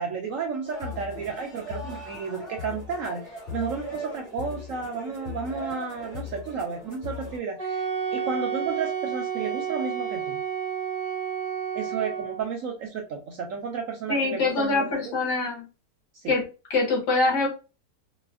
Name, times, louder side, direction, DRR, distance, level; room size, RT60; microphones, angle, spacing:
voice 1, 0.0-10.4 11.7-15.1 16.1-16.3, right 5 dB, 70° right, 2 dB, 0.8 m, -32 dB
sound 1, 0.6-7.4, left 2 dB, 45° left, 2.1 m, -38 dB
Wind instrument woodwind instrument, 7.6-12.5, right 7 dB, 45° right, 0.4 m, -30 dB
voice 2, 14.1-15.6 16.3-17.5, left 3 dB, 75° left, -2 dB, 1.9 m, -24 dB
4.0 x 2.2 x 2.4 m, 0.32 s
omnidirectional pair, 1.8 m